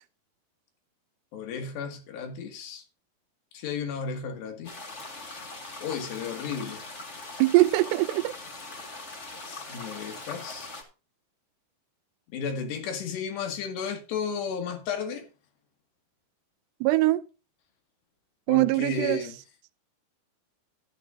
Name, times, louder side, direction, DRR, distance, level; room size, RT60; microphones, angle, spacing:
voice 1, 1.3-2.8 3.5-4.8 5.8-6.8 9.4-10.7 12.3-15.3 18.5-19.4, left 6 dB, 80° left, 4.2 m, -33 dB
sound 1, 4.6-10.8, left 3 dB, 55° left, 0.7 m, -41 dB
voice 2, 7.4-8.3 16.8-17.2 18.5-19.2, right 18 dB, 85° right, 2.7 m, -22 dB
13.0 x 11.5 x 2.6 m
omnidirectional pair, 4.8 m